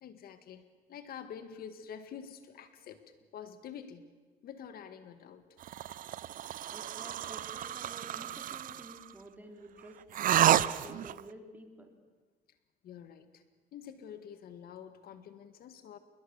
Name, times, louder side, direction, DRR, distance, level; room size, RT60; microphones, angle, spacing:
voice 1, 0.0-0.6 0.9-3.0 3.3-4.0 4.4-5.4 12.8-13.4 13.7-16.0, left 8 dB, 65° left, 10 dB, 1.7 m, -47 dB
sound 1, 5.6-9.0 10.1-11.2, right 11 dB, 55° right, 0.7 m, -30 dB
voice 2, 6.7-11.9, right 1 dB, 10° right, 3 dB, 3.9 m, -51 dB
28.5 x 21.5 x 7.1 m, 1.3 s
cardioid pair, 110°, 17 cm